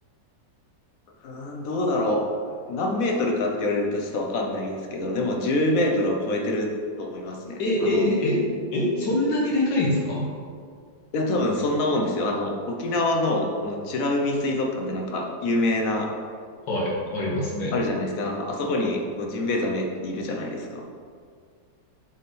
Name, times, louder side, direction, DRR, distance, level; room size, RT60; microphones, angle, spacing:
voice 1, 1.2-2.2 2.7-6.7 7.0-8.1 11.1-16.1 17.7-20.8, left 1 dB, 60° left, 1 dB, 1.0 m, -26 dB
voice 2, 7.6-8.4 8.7-10.3 16.7-17.8 18.7-18.8, left 1 dB, 85° left, -4 dB, 2.0 m, -24 dB
7.4 x 3.6 x 4.1 m, 2.1 s
omnidirectional pair, 1.9 m